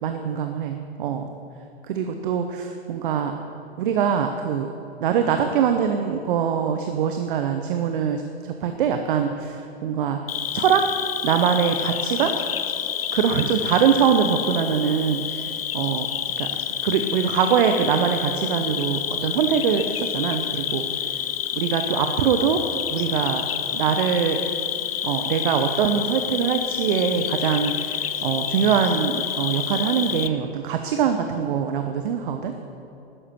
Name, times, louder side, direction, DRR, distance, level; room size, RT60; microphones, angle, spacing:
voice 1, 0.0-1.3 1.9-3.3 3.8-4.7 5.0-10.2 10.5-10.9 11.2-12.4 13.1-16.1 16.4-16.5 16.8-20.8 21.6-22.6 22.9-23.4 23.7-24.4 25.0-32.5, right 7 dB, 55° right, 6 dB, 1.0 m, -23 dB
Cricket, 10.3-30.3, left 9 dB, 65° left, 0.7 m, -28 dB
12.5 x 10.0 x 7.8 m, 2.9 s
figure-of-eight pair, 100°, 31 cm